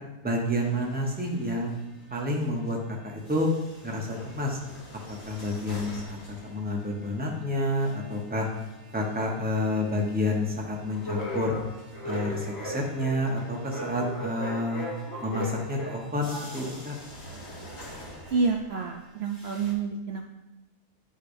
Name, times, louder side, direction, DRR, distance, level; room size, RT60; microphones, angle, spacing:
voice 1, 0.2-1.7 2.1-2.8 3.0-3.5 3.8-4.6 5.2-6.2 6.4-8.5 8.9-11.5 12.0-14.9 15.2-17.0, left 1 dB, 10° right, -1 dB, 0.7 m, -29 dB
sound 1, 0.5-2.9 3.2-18.9 19.2-19.7, equal, 20° left, 1.3 m, -41 dB
voice 2, 18.3-20.3, right 4 dB, 85° right, 2 dB, 0.5 m, -28 dB
10.0 x 5.0 x 2.6 m, 1.0 s
omnidirectional pair, 1.7 m